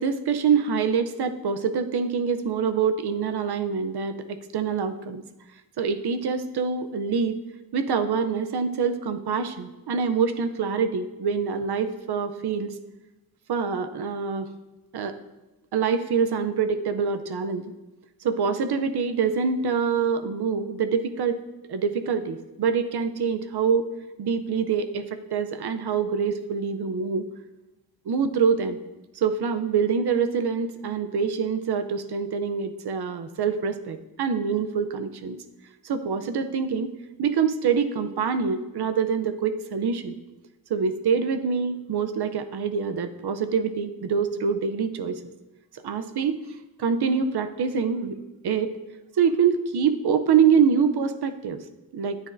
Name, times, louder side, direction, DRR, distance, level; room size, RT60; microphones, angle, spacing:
voice 1, 0.0-5.2 5.8-7.4 7.7-12.7 13.5-14.5 14.9-15.2 15.7-17.7 18.2-21.4 21.7-23.9 24.2-27.3 28.1-28.8 29.2-35.4 35.8-36.9 37.2-40.2 40.7-45.2 45.8-46.4 46.8-48.2 48.4-48.7 49.2-51.6 51.9-52.2, right 6 dB, 85° right, 9 dB, 0.7 m, -25 dB
13.0 x 9.0 x 2.6 m, 1.0 s
wide cardioid pair, 170°, 38 cm